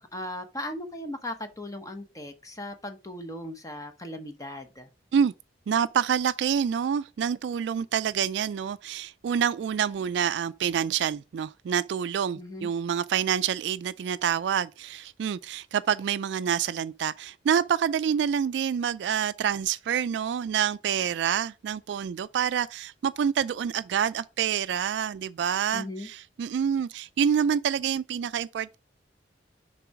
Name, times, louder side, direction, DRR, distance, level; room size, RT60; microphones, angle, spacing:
voice 1, 0.0-4.9 12.4-12.7 25.7-26.1, left 1 dB, 20° left, 0.9 m, -38 dB
voice 2, 5.7-28.8, right 8 dB, 75° right, 0.3 m, -27 dB
6.9 x 4.7 x 4.6 m
head